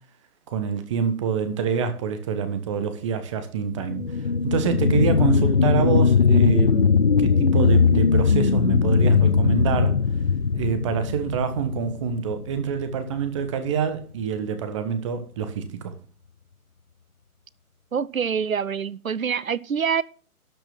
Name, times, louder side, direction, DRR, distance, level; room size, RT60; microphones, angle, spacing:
voice 1, 0.5-4.0 4.4-10.0 10.5-15.9, right 6 dB, 20° right, 1.3 m, -26 dB
sound 1, 3.7-12.8 13.3-13.4, left 5 dB, 45° left, 0.4 m, -20 dB
voice 2, 17.9-20.0, right 7 dB, 65° right, 0.8 m, -25 dB
12.0 x 6.1 x 6.1 m
figure-of-eight pair, 140°, 44 cm